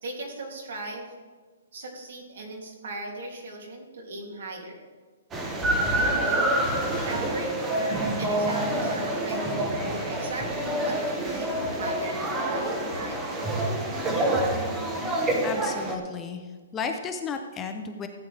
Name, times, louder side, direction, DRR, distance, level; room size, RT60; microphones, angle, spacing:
voice 1, 0.0-1.1 1.7-4.8 5.7-6.5 7.0-7.5 8.2-14.1, right 2 dB, 65° right, 1 dB, 2.7 m, -38 dB
sound 1, 5.3-16.0, right 1 dB, 10° right, 1.0 m, -27 dB
voice 2, 15.4-18.1, left 5 dB, 15° left, 6 dB, 0.5 m, -34 dB
15.0 x 8.6 x 3.4 m, 1.4 s
hypercardioid pair, 170°, 0 cm